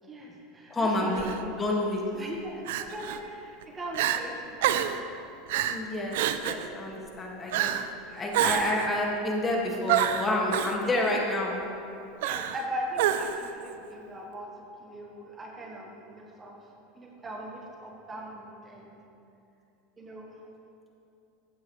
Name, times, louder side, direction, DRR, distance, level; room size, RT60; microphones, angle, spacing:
voice 1, 0.0-1.6 2.1-4.9 8.1-8.3 10.8-11.1 12.2-14.5 14.8-16.6 17.0-18.9 20.0-20.3, equal, 20° right, 0 dB, 1.3 m, -40 dB
voice 2, 0.7-2.0 5.7-7.7 8.2-11.5, left 1 dB, 20° left, -1 dB, 1.9 m, -29 dB
Crying sobbing, 1.1-1.4 2.7-3.2 3.6-3.7 3.9-4.2 4.6-5.0 5.5-5.8 6.1-6.7 7.5-7.9 8.3-8.9 9.9-10.8 12.2-12.6 13.0-13.5, right 10 dB, 70° right, 0.4 m, -27 dB
14.0 x 8.4 x 3.2 m, 2.8 s
hypercardioid pair, 95°, 0 cm